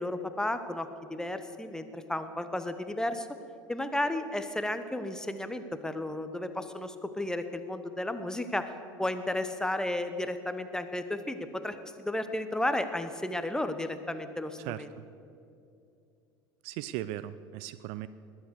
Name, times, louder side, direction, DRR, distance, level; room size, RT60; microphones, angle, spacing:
voice 1, 0.0-3.3 3.7-8.7 9.0-14.6, left 1 dB, 5° left, 10 dB, 1.0 m, -33 dB
voice 2, 14.6-15.0 16.6-18.1, right 13 dB, 50° right, 15 dB, 0.4 m, -38 dB
20.5 x 8.1 x 6.6 m, 2.5 s
figure-of-eight pair, 70°, 12 cm